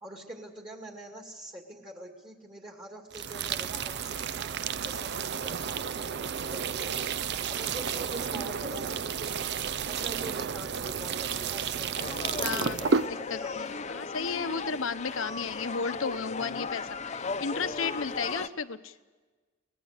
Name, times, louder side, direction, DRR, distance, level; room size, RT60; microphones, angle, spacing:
voice 1, 0.0-4.5 4.8-13.5, right 1 dB, 25° right, 2 dB, 2.3 m, -45 dB
sound 1, 3.1-13.1, right 6 dB, 60° right, 0.6 m, -32 dB
sound 2, 11.9-18.5, left 4 dB, 35° left, 0.8 m, -36 dB
voice 2, 12.4-13.0 13.3-18.9, left 5 dB, 80° left, 11 dB, 1.0 m, -34 dB
24.0 x 20.0 x 6.7 m, 1.3 s
head